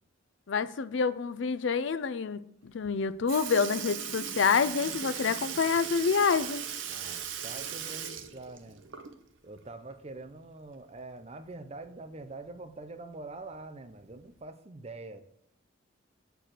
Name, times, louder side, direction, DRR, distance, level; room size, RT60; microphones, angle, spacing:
voice 1, 0.5-6.6, left 5 dB, 65° left, 0.5 m, -27 dB
Sink (filling or washing) / Liquid, 2.8-3.0 3.3-9.4 9.7-9.8 11.4-11.5 12.4-12.5 13.3-13.5 14.4-14.5, right 8 dB, 70° right, 0.8 m, -38 dB
voice 2, 6.9-8.8 9.4-15.2, right 2 dB, 35° right, 0.7 m, -45 dB
7.5 x 4.6 x 6.6 m
head